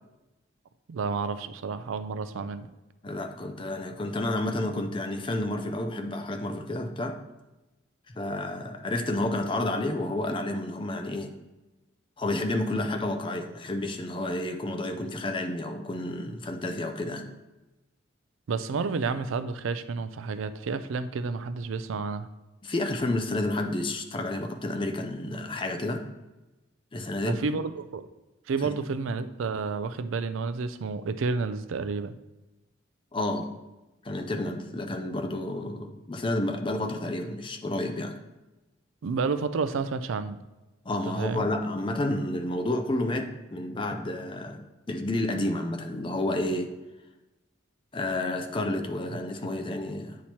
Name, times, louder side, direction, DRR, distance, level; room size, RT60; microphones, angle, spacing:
voice 1, 0.9-2.7 12.7-12.9 18.5-22.3 27.3-28.1 28.5-32.1 39.0-40.4 41.1-41.5, right 4 dB, 85° right, 11 dB, 0.4 m, -30 dB
voice 2, 3.0-7.2 8.1-11.3 12.2-17.3 22.6-26.0 26.9-27.5 28.6-28.7 33.1-33.5 34.0-38.2 40.8-44.6 44.9-46.7 47.9-50.2, left 1 dB, 25° left, 6 dB, 0.5 m, -30 dB
8.4 x 3.0 x 4.2 m, 1.1 s
head